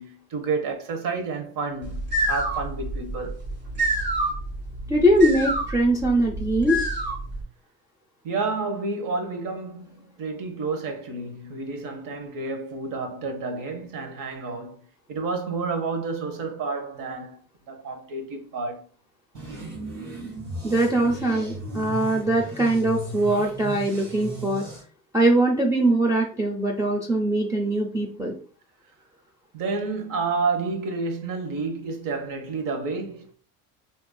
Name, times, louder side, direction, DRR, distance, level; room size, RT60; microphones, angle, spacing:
voice 1, 0.0-3.4 8.2-17.4 17.7-18.9 29.5-33.3, right 4 dB, 50° right, 1.0 m, -30 dB
sound 1, 1.8-7.4, right 1 dB, 25° right, 1.3 m, -28 dB
voice 2, 4.9-6.8 20.6-24.7 25.1-28.3, right 1 dB, 10° right, 0.5 m, -22 dB
sound 2, 19.3-24.8, equal, 85° right, 1.6 m, -36 dB
4.4 x 2.7 x 2.2 m
hypercardioid pair, 75°, 41 cm